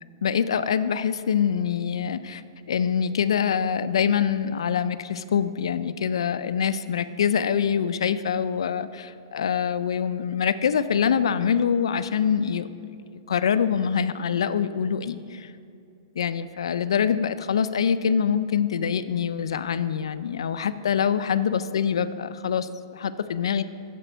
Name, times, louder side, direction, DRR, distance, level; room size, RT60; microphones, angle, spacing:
voice 1, 0.2-2.4 2.7-12.7 13.1-15.5 16.2-23.6, left 7 dB, 90° left, 13 dB, 0.4 m, -25 dB
9.0 x 6.8 x 4.5 m, 2.5 s
hypercardioid pair, 180°, 3 cm